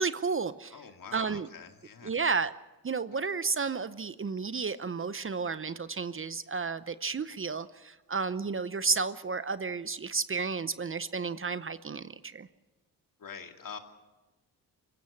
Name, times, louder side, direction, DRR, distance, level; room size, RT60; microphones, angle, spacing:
voice 1, 0.0-0.7 1.1-1.5 2.0-2.5 2.8-12.5, right 5 dB, 35° right, 15 dB, 0.8 m, -32 dB
voice 2, 0.7-2.1 13.2-13.8, left 6 dB, 55° left, 5 dB, 2.3 m, -45 dB
24.5 x 15.5 x 7.2 m, 1.1 s
cardioid pair, 65°, 39 cm